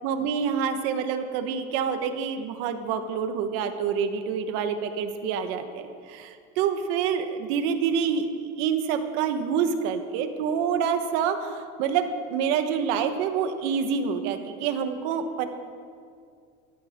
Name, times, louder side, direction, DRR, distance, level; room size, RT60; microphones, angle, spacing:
voice 1, 0.0-8.3 8.6-15.5, right 7 dB, 70° right, 7 dB, 1.4 m, -27 dB
19.0 x 13.5 x 3.8 m, 2.2 s
cardioid pair, 145°, 21 cm